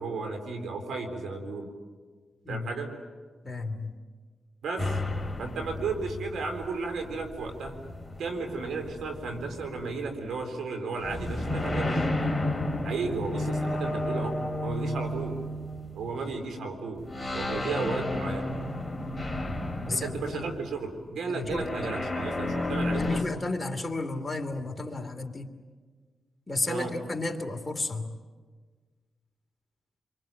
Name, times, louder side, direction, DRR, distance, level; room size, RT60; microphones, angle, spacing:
voice 1, 0.0-1.7 2.5-2.9 4.6-5.0 5.4-7.8 8.2-12.1 12.8-15.4 15.9-17.0 17.3-18.5 19.9-23.4 26.7-26.9, right 4 dB, 85° right, 5 dB, 4.0 m, -34 dB
voice 2, 3.4-3.9 19.9-20.5 21.3-21.7 23.0-25.5 26.5-28.1, left 2 dB, 25° left, 4 dB, 2.8 m, -32 dB
sound 1, 4.8-10.4 11.0-16.5 17.0-20.9 21.5-23.2, left 1 dB, 5° left, 3.0 m, -32 dB
27.5 x 23.5 x 9.1 m, 1.5 s
cardioid pair, 70°, 0 cm